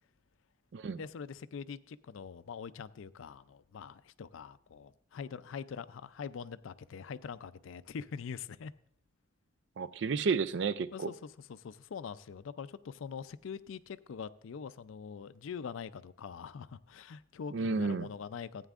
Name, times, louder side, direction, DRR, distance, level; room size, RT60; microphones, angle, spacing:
voice 1, 0.9-8.7 10.9-18.7, left 6 dB, 80° left, 0.4 m, -44 dB
voice 2, 9.8-11.1 17.5-18.1, right 5 dB, 60° right, 0.4 m, -31 dB
15.0 x 9.1 x 2.4 m
head